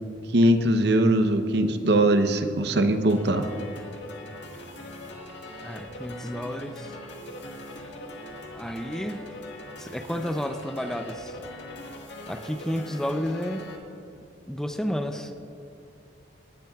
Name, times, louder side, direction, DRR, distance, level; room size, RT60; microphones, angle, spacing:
voice 1, 0.3-3.5, right 1 dB, 65° right, 8 dB, 0.7 m, -21 dB
sound 1, 3.1-13.8, left 1 dB, 85° left, 1.6 m, -41 dB
voice 2, 5.6-6.9 8.5-9.2 9.8-11.4 12.3-13.7 14.5-15.3, equal, 5° left, 6 dB, 0.4 m, -31 dB
18.0 x 12.0 x 2.3 m, 2.8 s
head